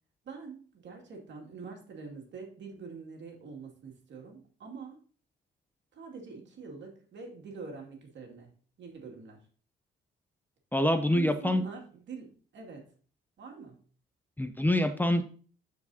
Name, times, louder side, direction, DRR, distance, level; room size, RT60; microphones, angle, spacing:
voice 1, 0.2-5.0 5.9-8.5 8.8-9.5 11.1-12.9 13.4-13.8, right 5 dB, 65° right, 1 dB, 2.4 m, -45 dB
voice 2, 10.7-11.6 14.4-15.2, left 1 dB, 10° left, 8 dB, 0.7 m, -26 dB
12.0 x 4.8 x 2.8 m, 0.43 s
cardioid pair, 90°, 20 cm